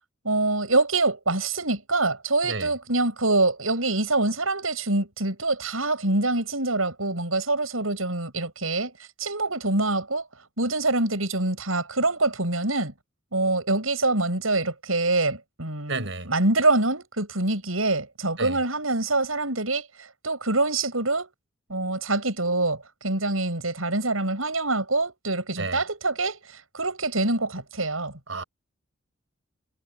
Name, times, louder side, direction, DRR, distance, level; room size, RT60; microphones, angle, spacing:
voice 1, 0.2-8.9 9.2-10.3 10.6-12.9 13.3-19.9 20.2-21.3 21.7-28.1, right 2 dB, 80° right, 8.0 m, -25 dB
voice 2, 15.9-16.3 18.4-18.6 25.6-25.8 28.3-28.4, right 3 dB, 60° right, 6.6 m, -31 dB
head